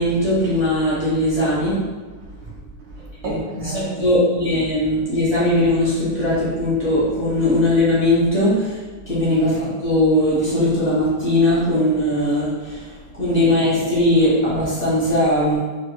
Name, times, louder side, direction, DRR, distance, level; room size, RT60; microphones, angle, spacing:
voice 1, 0.0-1.8 3.2-3.7 4.0-8.8 9.1-15.6, left 1 dB, 65° left, -12 dB, 0.4 m, -19 dB
voice 2, 2.1-3.9 9.0-9.2 13.0-13.1, right 2 dB, 75° right, -2 dB, 1.7 m, -35 dB
6.3 x 3.2 x 2.3 m, 1.3 s
omnidirectional pair, 3.6 m